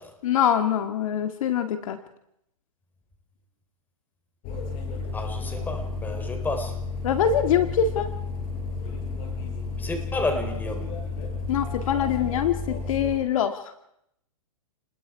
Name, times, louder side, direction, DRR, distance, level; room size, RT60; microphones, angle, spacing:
voice 1, 0.2-2.0 7.0-8.1 11.5-13.7, left 8 dB, 65° left, 8 dB, 1.9 m, -24 dB
sound 1, 4.4-13.2, left 4 dB, 40° left, 6.0 m, -32 dB
voice 2, 5.1-6.8 9.8-11.0, left 2 dB, 10° left, 5 dB, 3.5 m, -31 dB
29.0 x 20.5 x 4.8 m, 0.77 s
hypercardioid pair, 135°, 19 cm